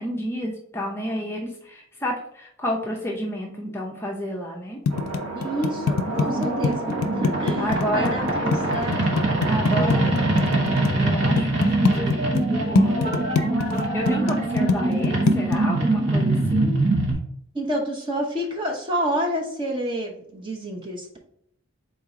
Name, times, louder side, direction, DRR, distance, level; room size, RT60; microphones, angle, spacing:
voice 1, 0.0-4.8 7.6-8.7 9.5-12.3 12.7-13.3 13.8-16.9, equal, 10° left, -1 dB, 0.5 m, -31 dB
sound 1, 4.9-10.9 11.4-12.5 12.8-15.6, left 4 dB, 85° left, 0.4 m, -23 dB
sound 2, 4.9-10.9, right 3 dB, 90° right, 0.9 m, -33 dB
voice 2, 5.3-6.8 7.1-7.7 7.9-9.1 9.7-10.1 17.5-21.2, right 1 dB, 25° right, 0 dB, 0.8 m, -29 dB
sound 3, 6.1-17.1, right 2 dB, 55° right, 1.2 m, -23 dB
4.0 x 2.8 x 4.8 m, 0.71 s
head